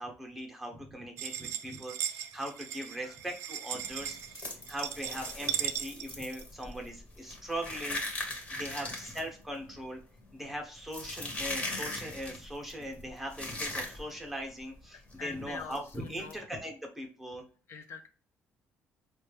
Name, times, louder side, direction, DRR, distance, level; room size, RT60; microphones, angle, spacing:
voice 1, 0.0-8.0 8.5-10.0 10.3-17.4, equal, 5° right, 2 dB, 0.8 m, -40 dB
sound 1, 1.2-6.7, right 10 dB, 70° right, 0.4 m, -37 dB
sound 2, 3.8-14.3 14.6-14.8 15.1-15.3 15.7-16.4, left 2 dB, 30° left, 1.0 m, -39 dB
voice 2, 14.9-16.5 17.7-18.1, left 6 dB, 55° left, 7 dB, 0.4 m, -45 dB
4.3 x 2.3 x 3.1 m, 0.38 s
cardioid pair, 140°, 5 cm